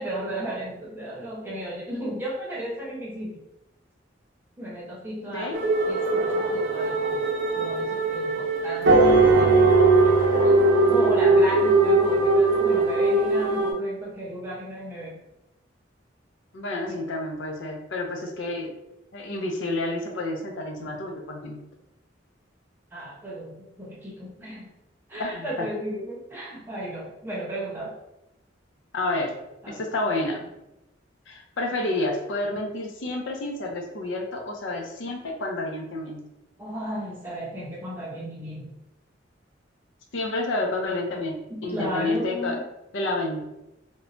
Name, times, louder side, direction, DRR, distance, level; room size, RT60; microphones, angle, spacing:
voice 1, 0.0-3.4 4.6-5.5 5.9-7.2 7.6-9.5 9.7-10.2 10.4-15.2 16.8-17.0 22.9-24.7 25.1-27.9 29.6-29.8 36.6-38.7 41.5-42.6, equal, 10° right, -5 dB, 0.7 m, -34 dB
sound 1, 5.5-13.7, right 3 dB, 85° right, 0.7 m, -20 dB
voice 2, 16.5-18.7 19.1-21.6 25.2-25.7 28.9-29.3 29.7-30.5 31.3-36.2 40.1-41.4 41.6-42.6 42.9-43.5, left 2 dB, 85° left, 1 dB, 0.5 m, -29 dB
3.0 x 2.1 x 2.5 m, 0.91 s
head